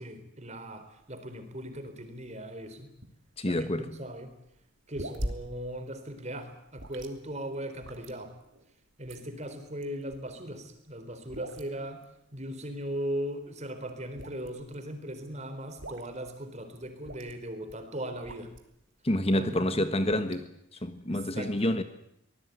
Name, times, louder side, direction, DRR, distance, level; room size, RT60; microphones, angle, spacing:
voice 1, 0.0-2.9 3.4-4.4 4.9-8.3 9.0-12.1 12.3-18.5 19.3-19.9 21.1-21.6, right 1 dB, 30° right, 3.9 m, -38 dB
sound 1, 0.7-18.9 19.3-20.4, right 1 dB, 60° right, 3.1 m, -44 dB
voice 2, 3.4-4.0 19.0-20.5 20.8-21.8, left 1 dB, 30° left, 1.3 m, -28 dB
24.5 x 19.5 x 9.6 m
head